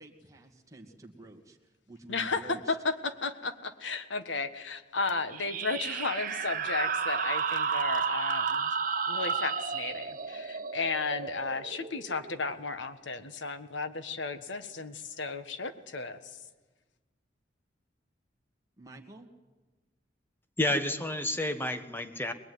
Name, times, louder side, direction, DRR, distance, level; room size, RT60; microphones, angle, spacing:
voice 1, 0.0-2.8 18.8-19.3, right 2 dB, 15° right, 0 dB, 2.1 m, -49 dB
voice 2, 2.1-8.7 9.1-16.4, left 4 dB, 75° left, 11 dB, 1.5 m, -34 dB
sound 1, 5.3-12.5, right 6 dB, 45° right, 1.2 m, -32 dB
voice 3, 20.6-22.3, left 1 dB, 10° left, 9 dB, 1.2 m, -30 dB
22.5 x 21.0 x 9.6 m, 1.2 s
head